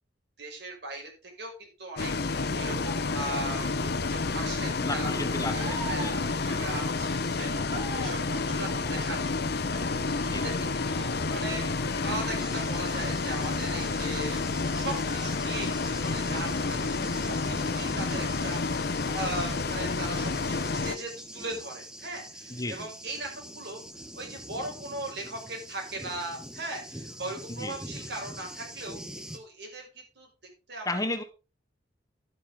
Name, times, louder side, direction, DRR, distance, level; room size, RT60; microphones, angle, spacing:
voice 1, 0.4-5.2 5.5-10.5 10.9-11.7 12.0-14.4 14.7-16.9 17.1-20.6 20.8-29.0 29.3-30.3 30.7-31.0, right 2 dB, 65° right, 1 dB, 5.8 m, -39 dB
Bus, 2.0-21.0, left 3 dB, 60° left, 0.9 m, -30 dB
voice 2, 4.8-6.3 10.2-10.4 22.5-22.9 27.5-27.8 30.9-31.2, left 2 dB, 20° left, 9 dB, 1.1 m, -33 dB
sound 1, 5.5-14.5 14.9-15.9, right 3 dB, 35° right, 4.6 m, -44 dB
Thunder, 12.4-29.4, equal, 5° right, 1.2 m, -44 dB
11.5 x 9.3 x 3.8 m, 0.31 s
head